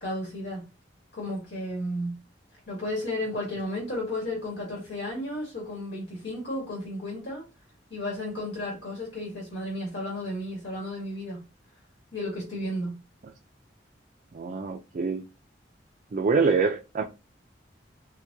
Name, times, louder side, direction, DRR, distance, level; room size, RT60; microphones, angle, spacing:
voice 1, 0.0-0.6 1.1-2.1 2.7-7.4 7.9-11.4 12.1-13.0, left 1 dB, 75° left, 1.6 m, -33 dB
voice 2, 14.3-15.3 16.1-17.0, right 4 dB, 45° right, 0.4 m, -25 dB
4.4 x 2.2 x 2.7 m
head